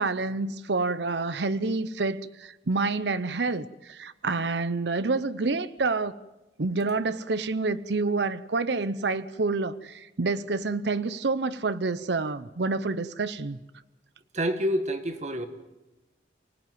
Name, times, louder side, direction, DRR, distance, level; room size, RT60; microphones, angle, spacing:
voice 1, 0.0-6.2 6.6-13.6, right 3 dB, 70° right, 0.7 m, -28 dB
voice 2, 14.3-15.5, equal, 40° right, 1.6 m, -27 dB
24.5 x 17.0 x 9.3 m
head